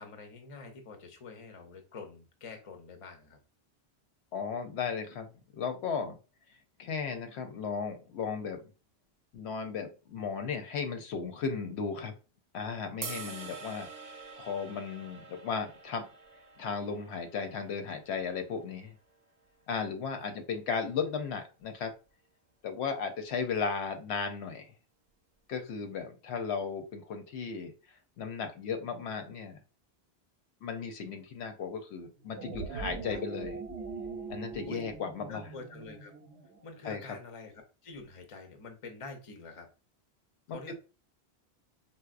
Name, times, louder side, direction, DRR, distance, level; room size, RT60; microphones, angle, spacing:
voice 1, 0.0-3.4 20.1-20.4 33.1-33.2 34.7-34.9 35.3-36.1 36.6-37.5 37.8-39.7 40.5-40.7, left 4 dB, 40° left, 5 dB, 0.5 m, -46 dB
voice 2, 4.3-6.2 6.8-8.6 9.3-12.1 12.5-13.9 14.4-16.0 16.6-19.0 19.7-21.9 22.6-24.7 25.5-27.7 28.2-29.6 30.6-33.6 34.3-35.5 36.8-37.0 40.5-40.7, left 5 dB, 85° left, 6 dB, 0.9 m, -35 dB
sound 1, 13.0-19.2, right 5 dB, 50° right, 0.6 m, -46 dB
sound 2, 32.2-36.8, right 4 dB, 90° right, 0.9 m, -42 dB
4.1 x 2.0 x 2.4 m, 0.32 s
omnidirectional pair, 1.1 m